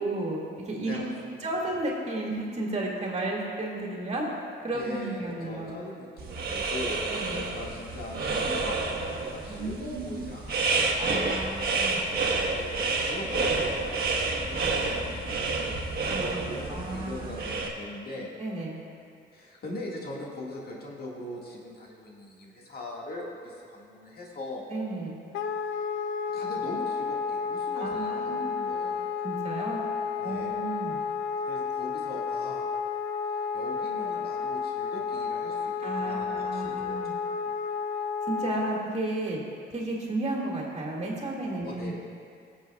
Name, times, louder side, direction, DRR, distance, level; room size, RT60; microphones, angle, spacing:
voice 1, 0.0-1.1 1.4-4.3 4.6-5.8 7.1-7.4 9.5-10.2 11.0-12.0 16.0-16.4 16.7-17.5 18.4-18.8 24.7-25.2 27.7-28.6 29.2-29.8 30.2-31.0 35.8-37.1 38.3-39.4 39.7-41.9, right 2 dB, 35° right, -3 dB, 2.2 m, -33 dB
voice 2, 0.8-1.5 4.7-7.0 7.3-11.3 12.5-18.3 19.3-24.7 26.3-29.0 30.2-30.6 31.5-32.7 33.3-37.1 37.5-37.6 41.6-41.9, left 1 dB, 50° left, -3 dB, 1.9 m, -41 dB
sound 1, 6.2-17.7, right 3 dB, 50° right, 1.3 m, -29 dB
Wind instrument woodwind instrument, 25.3-38.8, left 5 dB, 75° left, 0.5 m, -31 dB
21.0 x 7.4 x 2.4 m, 2.3 s
cardioid pair, 90°, 20 cm